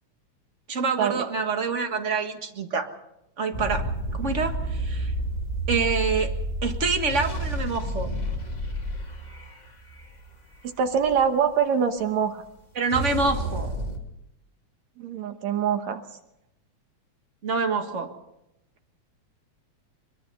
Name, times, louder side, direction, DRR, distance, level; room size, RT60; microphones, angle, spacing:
voice 1, 0.7-2.9 3.4-5.1 5.7-6.3 6.6-8.1 12.7-13.7 17.4-18.1, right 4 dB, 30° right, 5 dB, 1.4 m, -26 dB
sound 1, 3.5-11.3 12.9-14.0, right 1 dB, 15° left, 2.1 m, -30 dB
voice 2, 10.6-12.4 15.0-16.0, right 7 dB, 70° right, 7 dB, 2.3 m, -24 dB
23.5 x 22.5 x 5.5 m, 0.84 s
omnidirectional pair, 3.5 m